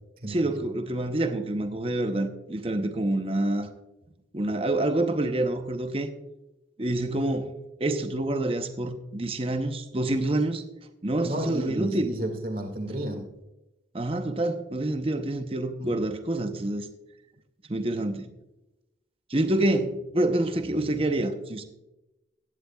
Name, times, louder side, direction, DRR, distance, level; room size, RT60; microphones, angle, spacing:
voice 1, 0.3-3.7 4.3-6.1 6.8-7.5 7.8-10.6 11.0-12.1 13.9-16.9 17.7-18.3 19.3-21.6, right 1 dB, 30° right, 7 dB, 0.8 m, -27 dB
voice 2, 11.2-13.3 15.8-15.9, right 1 dB, 50° right, 5 dB, 2.1 m, -32 dB
16.0 x 11.0 x 2.3 m, 0.96 s
head